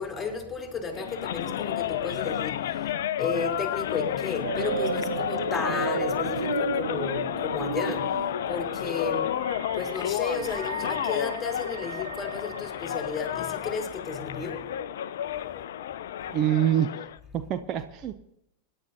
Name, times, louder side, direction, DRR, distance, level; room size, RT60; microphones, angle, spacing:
voice 1, 0.0-2.9 3.2-9.3 9.7-14.7, left 4 dB, 10° left, 3.4 m, -33 dB
sound 1, 0.9-17.2, left 10 dB, 60° left, 0.5 m, -31 dB
sound 2, 4.4-13.4, right 8 dB, 65° right, 0.5 m, -35 dB
voice 2, 16.3-16.9 17.3-18.1, right 11 dB, 35° right, 0.7 m, -25 dB
25.5 x 11.0 x 2.8 m
figure-of-eight pair, 90°, 0 cm